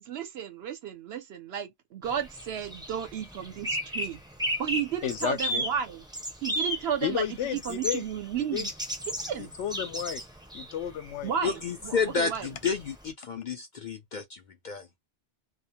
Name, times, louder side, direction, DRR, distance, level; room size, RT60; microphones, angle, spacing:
voice 1, 0.1-4.2 4.6-6.0 6.4-7.3 7.5-8.7 9.3-9.5 11.2-12.5, right 8 dB, 65° right, 0.8 m, -33 dB
sound 1, 2.0-13.1, equal, 5° right, 0.5 m, -35 dB
voice 2, 5.0-5.6 7.0-8.0 8.5-8.7 9.6-10.2 10.5-11.3, left 10 dB, 80° left, 0.9 m, -32 dB
voice 3, 11.4-14.9, left 5 dB, 55° left, 0.5 m, -31 dB
2.3 x 2.1 x 2.8 m
omnidirectional pair, 1.2 m